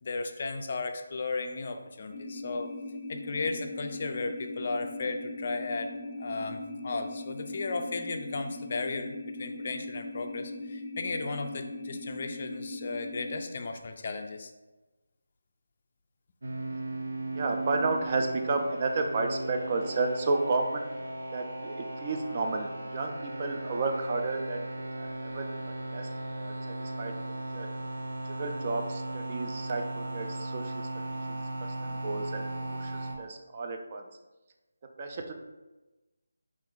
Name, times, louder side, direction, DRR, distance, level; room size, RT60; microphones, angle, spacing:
voice 1, 0.0-2.7 3.1-14.5, left 3 dB, 45° left, 6 dB, 0.3 m, -35 dB
sound 1, 2.1-13.4, left 2 dB, 5° left, 0.6 m, -40 dB
sound 2, 16.4-33.1, right 2 dB, 75° right, 0.7 m, -37 dB
voice 2, 17.3-20.8 21.3-24.7 25.0-25.5 25.9-27.1 27.5-27.7 28.2-34.0 35.0-35.3, right 3 dB, 35° right, 4 dB, 0.4 m, -32 dB
3.4 x 2.4 x 3.7 m, 1.1 s
figure-of-eight pair, 160°, 0 cm